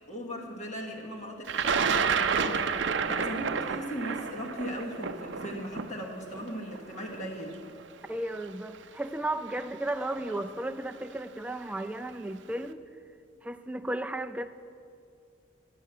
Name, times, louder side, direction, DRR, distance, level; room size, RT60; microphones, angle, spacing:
voice 1, 0.1-7.6, equal, 40° left, 0 dB, 1.2 m, -38 dB
Thunder, 1.5-7.5 8.4-8.5 9.6-9.9 10.2-10.7, right 6 dB, 70° right, 0.5 m, -30 dB
voice 2, 8.1-12.8 13.4-14.5, right 1 dB, 5° right, 8 dB, 0.3 m, -34 dB
11.0 x 8.1 x 7.5 m, 2.4 s
head